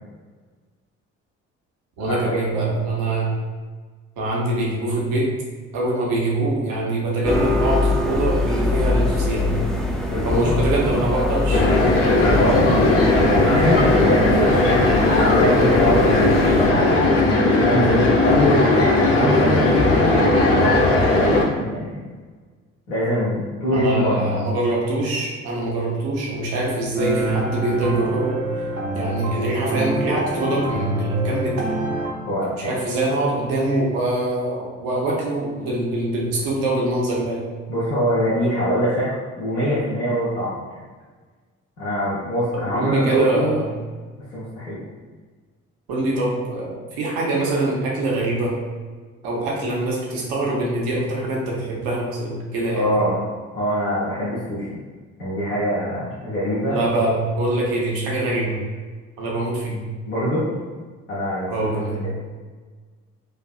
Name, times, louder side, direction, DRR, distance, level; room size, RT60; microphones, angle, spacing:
voice 1, 2.0-3.3 4.2-5.3 5.7-9.6 10.2-11.6 14.4-14.9 23.7-28.4 28.9-31.7 32.6-37.4 42.5-43.7 45.9-48.5 49.2-52.9 56.7-58.6 59.2-59.8 61.5-62.0, right 2 dB, 65° right, -3 dB, 1.0 m, -24 dB
sound 1, 7.2-16.7, left 2 dB, ahead, 0.5 m, -24 dB
voice 2, 10.1-10.6 12.2-13.0 13.5-14.8 15.2-17.3 17.6-22.0 22.9-24.3 32.2-32.7 37.7-40.6 41.8-43.6 44.1-44.8 52.7-53.2 53.5-54.8 55.2-56.8 60.1-60.5 61.1-62.1, equal, 85° left, -10 dB, 0.9 m, -23 dB
sound 2, 11.5-21.4, left 2 dB, 35° left, 0.7 m, -17 dB
sound 3, 27.0-32.1, right 2 dB, 35° right, 0.7 m, -26 dB
4.4 x 2.6 x 2.4 m, 1.4 s
figure-of-eight pair, 45°, 38 cm